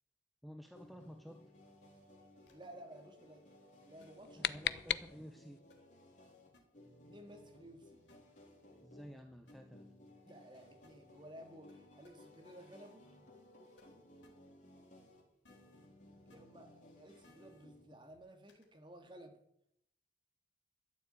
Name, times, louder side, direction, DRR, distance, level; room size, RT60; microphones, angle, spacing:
voice 1, 0.4-1.5 4.4-5.7 8.8-9.9, equal, ahead, 5 dB, 0.7 m, -52 dB
sound 1, 0.7-18.2, left 1 dB, 45° left, 3.8 m, -60 dB
sound 2, 2.5-2.6 4.0-4.1 4.6-4.7 5.7-5.8 6.5-6.6 8.1-8.2 9.5-9.6 10.8-10.9 11.7-11.8 12.0-12.1 13.8-13.9 14.2-14.3 15.4-15.9 16.3-16.4 17.2-17.6 18.5-18.6, left 3 dB, 85° left, 3.7 m, -65 dB
voice 2, 2.5-3.4 3.9-4.6 7.0-8.0 10.2-13.1 16.3-19.4, right 1 dB, 25° right, 5 dB, 2.1 m, -55 dB
sound 3, 3.9-5.6, left 10 dB, 65° left, 0.5 m, -39 dB
12.5 x 7.2 x 8.8 m, 0.77 s
head